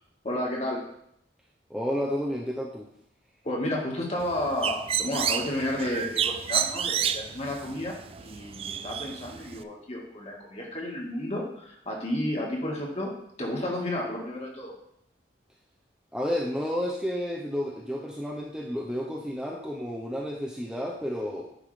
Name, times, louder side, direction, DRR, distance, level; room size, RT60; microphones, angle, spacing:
voice 1, 0.2-0.8 3.4-13.1 13.4-14.7, left 1 dB, 35° left, -2 dB, 1.9 m, -32 dB
voice 2, 1.7-2.9 16.1-21.5, equal, 5° right, -3 dB, 0.7 m, -31 dB
Bird, 4.2-9.6, right 8 dB, 30° right, 0.3 m, -31 dB
9.7 x 3.7 x 5.0 m, 0.73 s
head